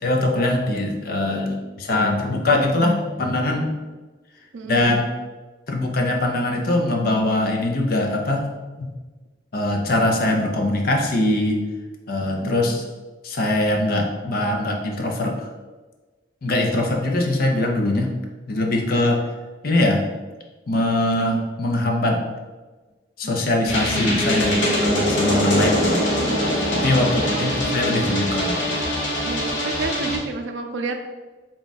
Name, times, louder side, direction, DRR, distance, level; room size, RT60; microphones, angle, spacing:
voice 1, 0.0-3.8 4.7-5.1 5.7-8.5 8.8-8.9 9.5-11.6 12.1-12.8 13.2-15.5 16.4-18.1 18.5-19.2 19.6-20.2 20.7-22.2 23.2-26.0 26.7-28.7, left 1 dB, 50° left, 2 dB, 0.5 m, -22 dB
voice 2, 4.5-5.0 12.4-12.7 26.9-27.5 29.2-31.1, right 3 dB, 80° right, 4 dB, 0.4 m, -32 dB
sound 1, 23.7-30.2, equal, 80° left, 0.8 m, -22 dB
3.6 x 2.3 x 4.0 m, 1.3 s
head